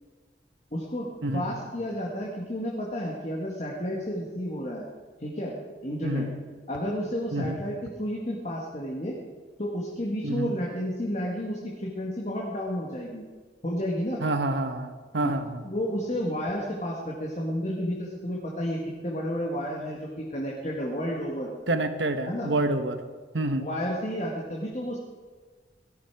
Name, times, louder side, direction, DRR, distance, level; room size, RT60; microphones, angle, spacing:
voice 1, 0.7-1.1 1.3-4.8 5.2-5.5 5.8-6.3 6.7-9.1 9.6-13.2 13.6-14.2 15.2-15.3 15.6-21.5 22.3-22.5 23.6-25.0, equal, 40° left, -2 dB, 1.8 m, -31 dB
voice 2, 14.2-15.6 21.7-23.0 23.3-23.7, right 2 dB, 80° right, 8 dB, 1.2 m, -28 dB
17.5 x 13.5 x 4.8 m, 1.5 s
head